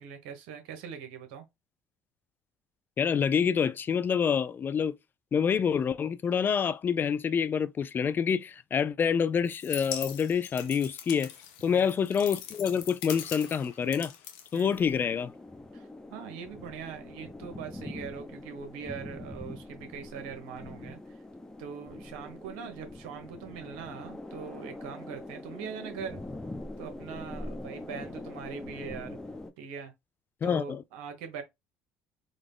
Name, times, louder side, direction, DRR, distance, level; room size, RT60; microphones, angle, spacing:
voice 1, 0.0-1.4 11.7-11.9 14.5-14.9 15.7-21.2 21.6-26.2 26.8-29.2 29.6-29.9 30.4-31.4, right 7 dB, 85° right, 1.2 m, -42 dB
voice 2, 3.0-5.0 5.3-11.3 11.6-14.1 14.5-15.3 30.4-30.8, left 7 dB, 40° left, 0.4 m, -27 dB
sound 1, 9.4-15.2, left 10 dB, 85° left, 0.8 m, -41 dB
sound 2, 14.6-29.5, left 2 dB, 10° left, 0.8 m, -43 dB
4.0 x 2.3 x 3.6 m
supercardioid pair, 75°, 6 cm